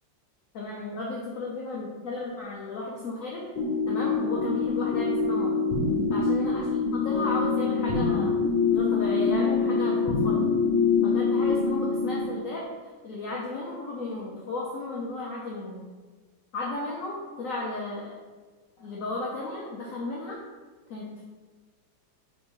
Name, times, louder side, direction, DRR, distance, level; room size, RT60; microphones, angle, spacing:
voice 1, 0.5-3.4 3.9-5.6 6.1-6.7 6.9-8.4 8.7-10.4 11.0-12.7 13.0-15.8 16.5-18.2 18.8-20.4 20.9-21.2, left 2 dB, 65° left, -3 dB, 0.8 m, -34 dB
sound 1, 3.6-12.3, left 4 dB, 85° left, 1.4 m, -25 dB
4.4 x 3.8 x 3.1 m, 1.4 s
omnidirectional pair, 2.0 m